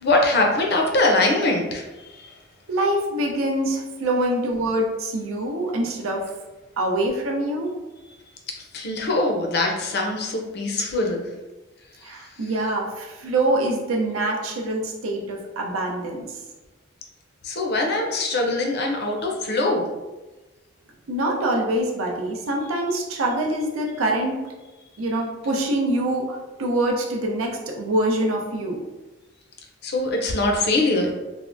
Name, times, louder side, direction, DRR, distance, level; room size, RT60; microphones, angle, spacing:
voice 1, 0.0-2.4 8.5-11.3 12.0-12.5 17.4-19.9 29.8-31.1, left 2 dB, 50° left, 1 dB, 0.5 m, -23 dB
voice 2, 2.7-6.3 6.8-7.7 12.0-16.3 21.1-24.5 25.0-28.8, right 1 dB, 85° right, 0 dB, 0.6 m, -25 dB
3.4 x 2.0 x 2.5 m, 1.1 s
head